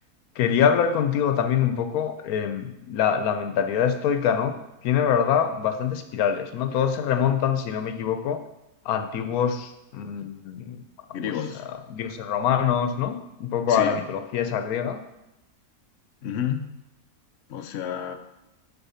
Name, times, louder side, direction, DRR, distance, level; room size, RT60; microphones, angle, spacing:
voice 1, 0.4-4.6 4.8-8.4 8.9-10.8 11.9-15.0, left 8 dB, 90° left, 9 dB, 1.1 m, -24 dB
voice 2, 11.1-11.6 13.7-14.0 16.2-16.7 17.5-18.2, left 9 dB, 60° left, 7 dB, 0.8 m, -30 dB
7.0 x 4.3 x 5.6 m, 0.91 s
omnidirectional pair, 1.5 m